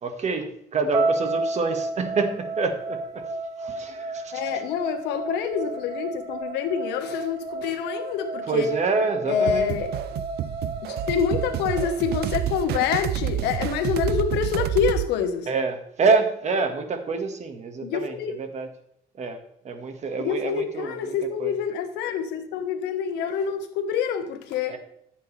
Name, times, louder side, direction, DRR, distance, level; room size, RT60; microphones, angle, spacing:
voice 1, 0.0-3.2 3.6-4.4 8.5-9.7 15.5-18.7 19.2-19.4 19.6-21.5 24.7-24.8, right 4 dB, 40° right, 1.7 m, -27 dB
sound 1, 0.9-13.1, right 2 dB, 25° right, 3.1 m, -32 dB
voice 2, 4.3-8.7 9.3-10.2 10.8-15.5 17.8-18.3 20.2-24.8, left 7 dB, 90° left, 1.3 m, -27 dB
sound 2, 9.5-15.1, right 12 dB, 70° right, 0.6 m, -29 dB
14.0 x 8.2 x 3.4 m
cardioid pair, 110°, 17 cm